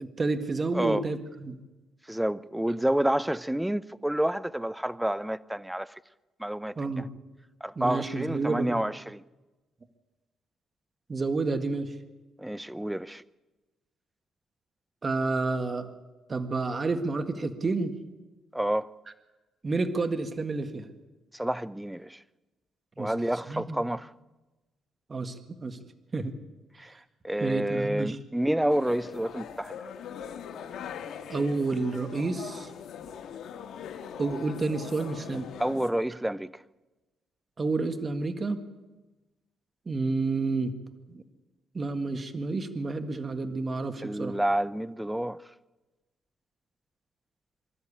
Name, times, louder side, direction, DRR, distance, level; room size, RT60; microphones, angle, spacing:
voice 1, 0.0-1.6 6.8-7.1 7.7-8.8 11.1-11.9 15.0-15.9 16.3-18.0 19.6-20.9 23.0-23.1 23.5-23.8 25.1-25.8 26.1-26.3 27.4-28.2 31.3-32.7 34.2-35.5 37.6-38.6 39.8-40.7 41.1-41.2 41.7-44.4, right 3 dB, 30° right, 1.8 m, -30 dB
voice 2, 2.1-5.9 6.4-7.0 7.6-9.2 12.4-13.2 18.5-18.9 21.3-22.2 23.0-24.1 26.8-26.9 27.2-29.9 35.6-36.5 44.0-45.4, right 1 dB, 5° right, 0.6 m, -29 dB
sound 1, 28.7-35.9, left 8 dB, 70° left, 1.5 m, -41 dB
25.0 x 13.0 x 8.6 m
cardioid pair, 90°, 0 cm